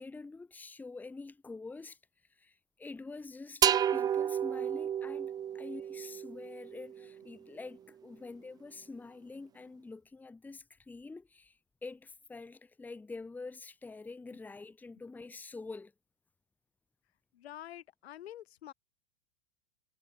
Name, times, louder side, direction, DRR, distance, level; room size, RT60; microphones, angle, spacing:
voice 1, 0.0-2.0 2.3-3.6 3.9-15.9, left 3 dB, 5° left, 1.9 m, -46 dB
sound 1, 3.6-7.2, right 9 dB, 15° right, 0.7 m, -31 dB
voice 2, 17.3-18.7, left 12 dB, 90° left, 8.0 m, -47 dB
supercardioid pair, 170°, 31 cm